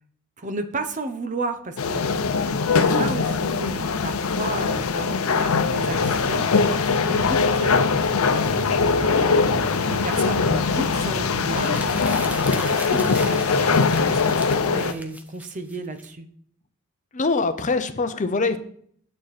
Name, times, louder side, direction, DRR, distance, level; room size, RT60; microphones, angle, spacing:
voice 1, 0.4-2.2 2.7-6.4 6.9-8.1 8.9-12.0 12.7-16.3, right 2 dB, 35° right, 8 dB, 0.8 m, -33 dB
sound 1, 1.8-14.9, left 4 dB, 85° left, 0.7 m, -22 dB
sound 2, 5.7-13.8, right 1 dB, 80° right, 1.4 m, -37 dB
sound 3, 11.4-16.1, right 1 dB, 5° right, 0.8 m, -38 dB
voice 2, 17.1-18.6, left 3 dB, 35° left, 10 dB, 0.7 m, -24 dB
9.1 x 8.5 x 4.2 m, 0.62 s
head